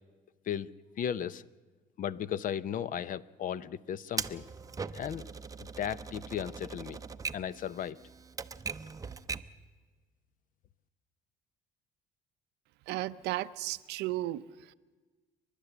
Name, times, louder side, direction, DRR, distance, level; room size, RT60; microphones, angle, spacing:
voice 1, 1.0-1.4 2.0-4.4 4.9-5.3 5.6-7.0 7.3-8.0, left 9 dB, 55° left, 17 dB, 0.7 m, -35 dB
Typewriter, 4.2-9.6, right 5 dB, 20° right, 0.6 m, -40 dB
voice 2, 12.9-14.7, right 16 dB, 85° right, 14 dB, 0.6 m, -35 dB
29.0 x 12.0 x 8.0 m, 1.3 s
cardioid pair, 110°, 17 cm